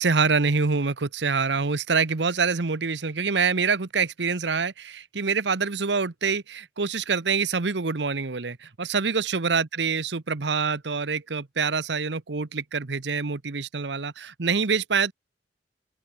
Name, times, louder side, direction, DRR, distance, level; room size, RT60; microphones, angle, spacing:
voice 1, 0.0-15.1, right 5 dB, 80° right, 1.0 m, -25 dB
open air
head